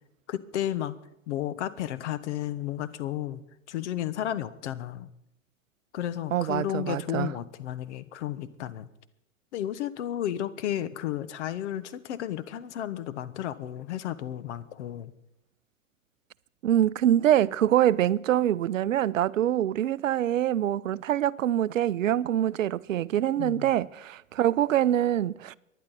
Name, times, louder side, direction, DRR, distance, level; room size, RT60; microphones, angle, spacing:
voice 1, 0.3-1.0 1.3-3.4 3.7-5.1 5.9-8.9 9.5-15.1 23.4-23.7, left 11 dB, 60° left, 1.1 m, -33 dB
voice 2, 6.3-7.3 16.6-25.6, right 11 dB, 75° right, 0.6 m, -25 dB
24.5 x 11.0 x 4.1 m
hypercardioid pair, 105°, 40 cm